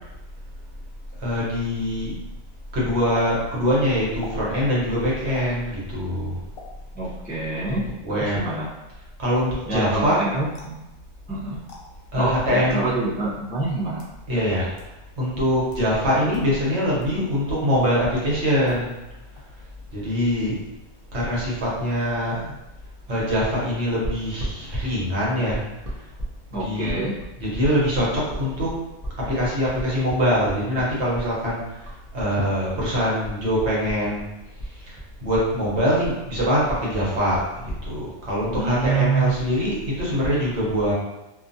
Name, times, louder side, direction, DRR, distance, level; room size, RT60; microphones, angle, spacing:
voice 1, 1.2-2.1 2.7-6.4 7.7-8.4 9.2-10.2 12.1-12.8 14.3-14.7 15.2-18.9 19.9-20.6 21.1-22.6 23.1-25.6 26.5-27.0 27.4-28.8 29.3-31.8 32.1-34.3 34.9-35.0 35.2-40.9, equal, 70° right, -6 dB, 1.2 m, -23 dB
sound 1, 3.1-3.3 4.2-4.4 5.3-5.5 6.5-6.7 7.6-7.8 10.5-10.8 11.7-11.8 12.8-12.9 13.7-14.2 14.8-14.9 15.6-15.9 16.3-16.4 17.0-17.2 18.6-19.1 19.4-19.8, left 3 dB, 60° left, 0.8 m, -42 dB
voice 2, 6.9-8.7 9.7-10.8 11.3-11.7 12.1-14.0 26.5-27.2 38.6-39.3, right 3 dB, 15° left, -8 dB, 0.3 m, -26 dB
sound 2, 24.0-32.3 32.6-34.3 34.6-37.8, right 1 dB, 40° right, 0.7 m, -34 dB
2.5 x 2.4 x 2.6 m, 0.99 s
omnidirectional pair, 1.2 m